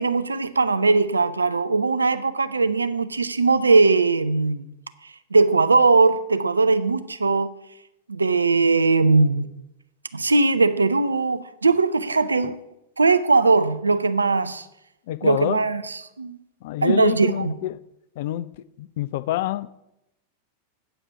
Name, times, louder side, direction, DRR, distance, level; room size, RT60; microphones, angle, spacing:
voice 1, 0.0-4.7 5.3-7.5 8.1-9.5 10.1-12.6 13.0-14.6 15.2-15.8 16.2-16.4 16.8-17.5, right 3 dB, 80° right, 0.5 m, -20 dB
voice 2, 15.1-15.6 16.6-17.8 18.2-18.5 18.8-19.8, left 14 dB, 50° left, 0.3 m, -27 dB
8.9 x 4.9 x 7.0 m
figure-of-eight pair, 90°, 0 cm